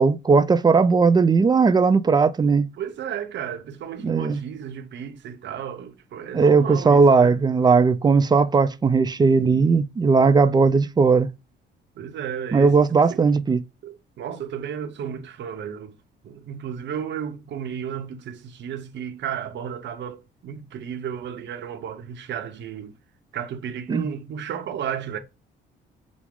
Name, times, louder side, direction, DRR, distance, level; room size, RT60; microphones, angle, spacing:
voice 1, 0.0-2.7 4.0-4.4 6.3-11.3 12.5-13.6 23.9-24.1, right 4 dB, 20° right, 0.3 m, -18 dB
voice 2, 2.8-7.4 12.0-13.2 13.8-16.0 16.2-22.9 23.3-25.2, right 8 dB, 65° right, 0.7 m, -33 dB
5.9 x 2.0 x 3.6 m
cardioid pair, 90°, 20 cm